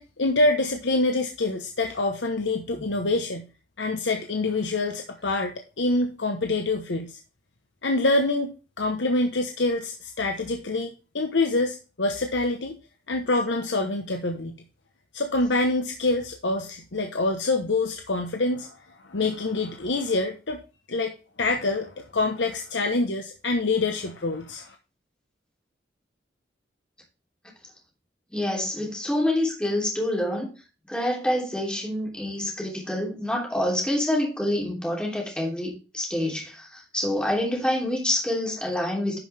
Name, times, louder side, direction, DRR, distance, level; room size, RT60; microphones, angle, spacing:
voice 1, 0.0-3.4 3.8-7.2 7.8-12.7 13.1-14.5 15.1-18.8 19.1-20.6 20.9-21.1 21.4-24.8, left 2 dB, 80° left, 1.0 m, -26 dB
voice 2, 28.3-30.5 30.9-39.2, left 1 dB, 5° left, 3.0 m, -27 dB
11.0 x 5.6 x 3.4 m
head